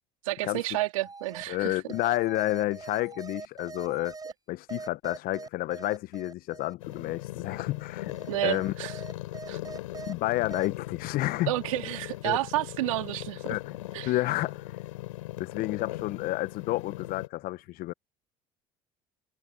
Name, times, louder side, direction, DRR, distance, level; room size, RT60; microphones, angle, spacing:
voice 1, 0.2-1.8 8.3-9.0 9.5-9.6 11.5-13.6 13.9-14.1, right 18 dB, 80° right, 4.0 m, -30 dB
sound 1, 1.0-1.4 1.9-4.3 4.7-7.0 7.8-10.1 10.5-10.7, right 4 dB, 20° right, 5.9 m, -43 dB
voice 2, 1.5-4.2 4.5-8.2 8.4-8.7 10.1-11.5 12.2-12.4 13.5-13.8 14.1-14.7 15.4-17.9, left 17 dB, 60° left, 1.1 m, -30 dB
sound 2, 6.8-17.3, left 17 dB, 80° left, 7.3 m, -39 dB
hypercardioid pair, 65°, 17 cm